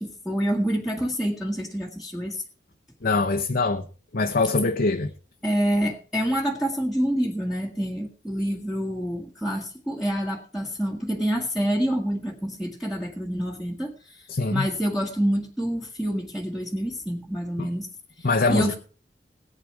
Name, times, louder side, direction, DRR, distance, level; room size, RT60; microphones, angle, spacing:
voice 1, 0.0-2.4 5.4-14.2 14.5-17.9 18.2-18.8, equal, ahead, -2 dB, 1.6 m, -27 dB
voice 2, 3.0-3.9 4.1-5.1 14.3-14.7 17.6-17.7 18.2-18.8, left 3 dB, 55° left, 4 dB, 0.9 m, -23 dB
18.0 x 9.3 x 4.7 m, 0.39 s
head